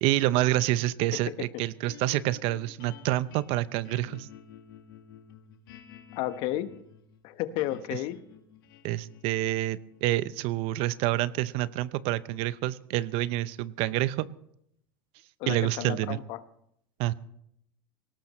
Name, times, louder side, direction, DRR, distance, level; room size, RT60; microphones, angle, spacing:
voice 1, 0.0-4.3 8.8-14.3 15.5-16.2 17.0-17.1, right 16 dB, 55° right, 17 dB, 0.7 m, -28 dB
sound 1, 1.9-14.2, left 9 dB, 80° left, 1.7 m, -53 dB
voice 2, 6.1-6.7 7.2-8.2 15.4-16.4, left 14 dB, 55° left, 11 dB, 1.2 m, -32 dB
19.5 x 18.0 x 3.1 m, 0.74 s
hypercardioid pair, 100°, 12 cm